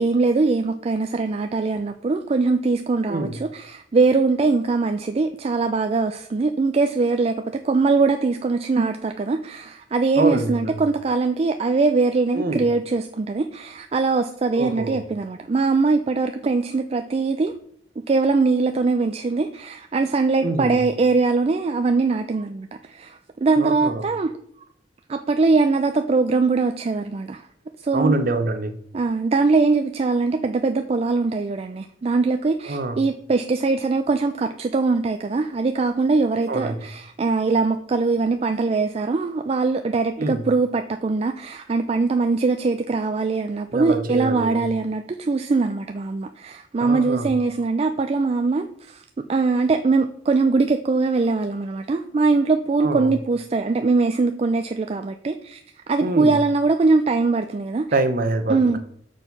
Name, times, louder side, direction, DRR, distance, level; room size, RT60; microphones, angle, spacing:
voice 1, 0.0-17.5 18.1-24.3 25.1-27.4 27.8-28.2 28.9-49.0 49.3-55.6 55.9-57.9 58.5-58.8, right 3 dB, 30° right, 7 dB, 0.3 m, -22 dB
voice 2, 10.1-10.9 12.3-12.7 14.6-15.0 20.4-20.8 23.6-24.1 27.9-28.8 32.7-33.0 36.5-36.9 40.2-40.4 43.7-44.7 46.8-47.3 52.8-53.1 56.0-56.4 57.9-58.8, right 2 dB, 50° right, 9 dB, 0.8 m, -25 dB
6.3 x 4.5 x 5.3 m, 0.67 s
head